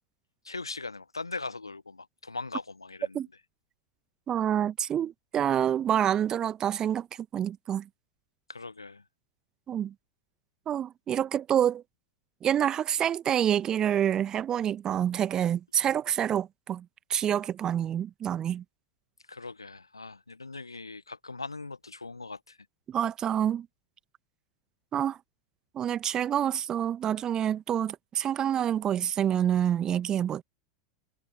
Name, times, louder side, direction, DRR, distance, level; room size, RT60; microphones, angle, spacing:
voice 1, 0.4-3.3 8.5-9.0 19.3-22.6, left 3 dB, 85° left, 1.3 m, -40 dB
voice 2, 4.3-7.1 7.3-7.8 9.7-9.9 10.7-11.8 12.4-16.8 17.1-18.6 22.9-23.7 24.9-25.2 25.7-30.4, right 10 dB, 25° right, 1.2 m, -27 dB
figure-of-eight pair, 90°, 2 cm